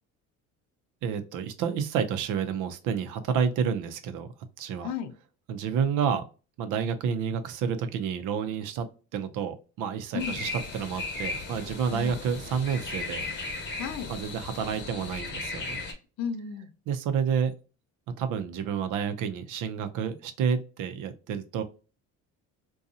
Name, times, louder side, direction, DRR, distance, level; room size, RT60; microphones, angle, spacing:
voice 1, 1.0-4.3 4.6-4.9 5.5-6.2 6.6-8.9 9.1-13.2 14.1-15.8 16.9-17.5 18.2-21.6, right 7 dB, 75° right, 9 dB, 0.6 m, -29 dB
sound 1, 10.2-15.9, left 3 dB, 35° left, 0.8 m, -36 dB
voice 2, 13.8-14.1 16.2-16.7, left 7 dB, 60° left, 7 dB, 0.6 m, -33 dB
2.7 x 2.3 x 2.5 m, 0.33 s
cardioid pair, 110°, 31 cm